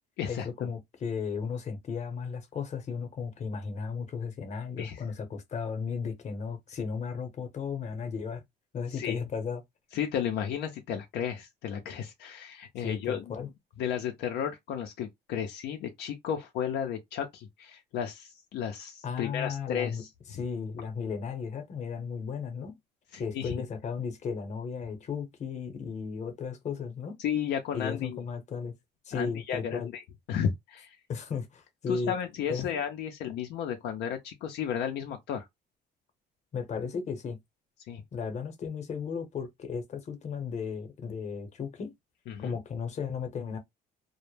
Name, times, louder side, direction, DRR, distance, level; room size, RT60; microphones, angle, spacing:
voice 1, 0.3-8.4 8.7-9.6 12.8-13.5 19.0-20.0 20.3-22.8 23.2-27.2 27.7-28.7 29.0-29.9 31.1-32.1 32.5-32.7 36.5-37.4 38.1-41.9 42.4-43.6, left 6 dB, 45° left, 0.8 m, -35 dB
voice 2, 9.9-13.4 13.8-20.1 23.1-23.5 27.2-28.2 29.1-30.0 30.3-31.0 31.9-35.5 37.9-38.0 42.3-42.6, left 8 dB, 75° left, 0.5 m, -33 dB
2.1 x 2.1 x 3.1 m
cardioid pair, 110°, 17 cm